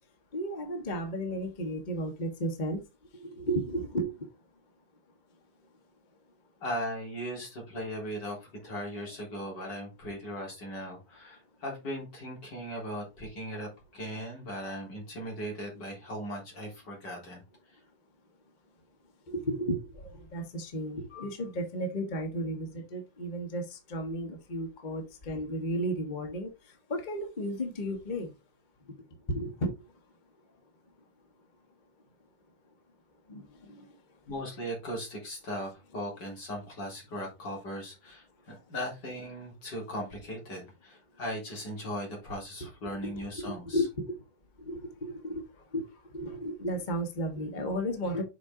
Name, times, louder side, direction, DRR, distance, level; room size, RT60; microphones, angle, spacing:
voice 1, 0.3-2.8 3.1-4.3 19.3-28.3 28.8-28.9 29.3-29.9 33.3-34.2 38.5-38.6 43.0-43.1 43.4-44.2 44.6-48.2, equal, 30° left, 1.4 m, -34 dB
voice 2, 6.6-17.4 34.3-43.8, equal, 85° left, 4.4 m, -38 dB
7.6 x 5.0 x 3.8 m
omnidirectional pair, 1.8 m